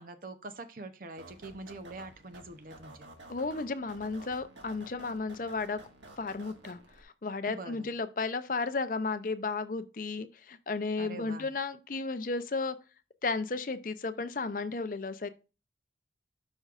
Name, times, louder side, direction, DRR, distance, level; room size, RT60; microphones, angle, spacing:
voice 1, 0.0-3.1 7.5-7.9 11.0-11.5, right 2 dB, 50° right, 0.7 m, -44 dB
sound 1, 1.2-7.0, right 2 dB, 85° right, 1.7 m, -52 dB
voice 2, 3.3-5.8 6.2-12.8 13.2-15.3, left 3 dB, 45° left, 0.5 m, -34 dB
12.0 x 5.3 x 2.5 m
head